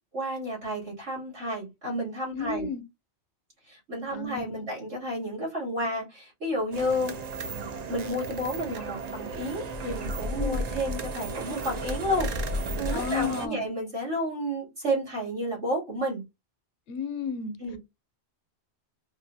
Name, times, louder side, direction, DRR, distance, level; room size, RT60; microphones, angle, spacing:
voice 1, 0.1-2.7 3.7-7.2 7.9-16.2 17.6-17.8, equal, 80° right, 2.8 m, -31 dB
voice 2, 2.3-2.8 4.1-4.7 10.4-10.6 12.9-13.6 16.9-17.6, left 5 dB, 80° left, 0.9 m, -33 dB
sound 1, 6.7-13.5, right 2 dB, 55° right, 0.5 m, -33 dB
4.9 x 2.2 x 2.6 m
omnidirectional pair, 1.2 m